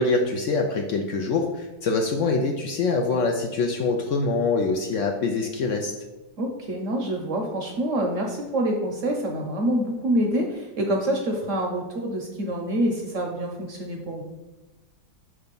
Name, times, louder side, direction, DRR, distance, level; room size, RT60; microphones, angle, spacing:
voice 1, 0.0-5.9, left 3 dB, 75° left, 3 dB, 0.7 m, -24 dB
voice 2, 6.4-14.2, right 1 dB, 60° right, 1 dB, 0.8 m, -26 dB
5.8 x 3.3 x 5.2 m, 1.1 s
omnidirectional pair, 1.9 m